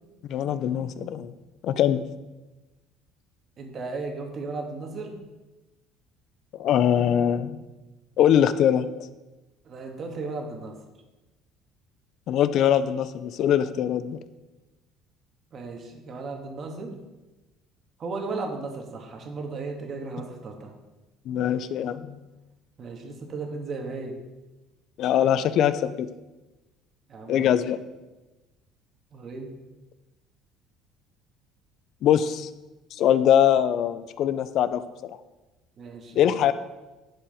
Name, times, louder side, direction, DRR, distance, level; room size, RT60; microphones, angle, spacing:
voice 1, 0.3-1.3 1.6-2.1 6.5-7.6 8.2-8.9 12.3-14.2 21.3-22.2 25.0-26.1 27.3-27.8 32.0-32.5 32.9-34.8 36.2-36.5, left 10 dB, 60° left, 13 dB, 0.5 m, -22 dB
voice 2, 3.6-5.2 9.6-10.8 15.5-17.0 18.0-20.7 22.8-24.2 27.1-27.5 29.1-29.5 35.8-36.3, right 3 dB, 40° right, 3 dB, 1.6 m, -35 dB
10.5 x 4.9 x 5.0 m, 1.1 s
cardioid pair, 120°, 0 cm